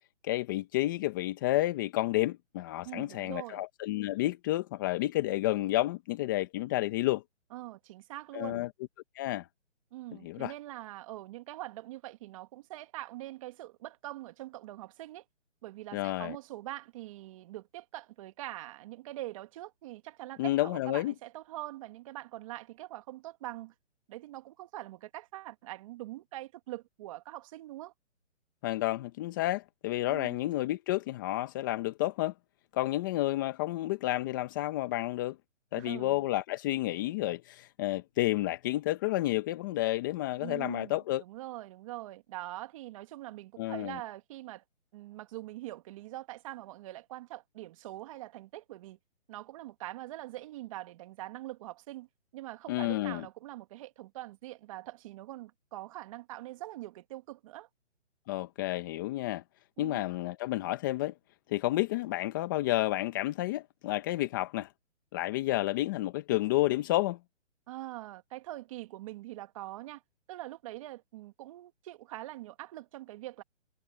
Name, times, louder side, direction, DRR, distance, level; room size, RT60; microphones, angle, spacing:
voice 1, 0.2-7.2 8.3-8.7 9.2-9.5 10.2-10.5 15.9-16.4 20.4-21.1 28.6-32.3 32.7-35.4 35.7-41.2 43.6-43.9 52.7-53.3 58.3-59.4 59.8-61.1 61.5-64.7 65.1-67.2, left 16 dB, 15° left, 0.9 m, -30 dB
voice 2, 2.8-3.6 7.5-8.6 9.9-15.2 15.6-23.7 24.1-27.9 30.1-30.4 35.7-36.2 40.4-44.6 44.9-49.0 49.3-52.1 52.3-57.7 59.8-60.0 67.7-70.0 70.3-73.4, right 16 dB, 25° right, 1.9 m, -43 dB
hypercardioid pair, 155°, 37 cm